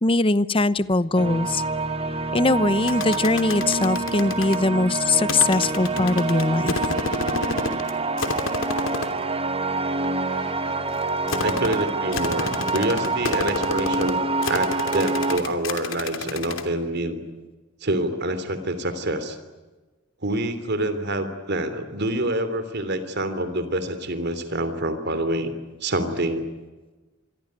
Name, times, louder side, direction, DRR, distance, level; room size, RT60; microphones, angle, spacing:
voice 1, 0.0-1.6 2.3-6.7, left 2 dB, 25° left, 15 dB, 0.8 m, -21 dB
sound 1, 1.2-15.4, right 3 dB, 30° right, 1.6 m, -27 dB
sound 2, 2.9-4.6 5.3-7.9 8.2-9.2 9.9-16.6, left 3 dB, 70° left, 3.0 m, -30 dB
voice 2, 11.4-14.2 14.5-17.2 17.8-19.4 20.2-25.5 25.8-26.4, right 1 dB, 55° right, 11 dB, 3.2 m, -26 dB
27.0 x 22.5 x 9.6 m, 1.2 s
head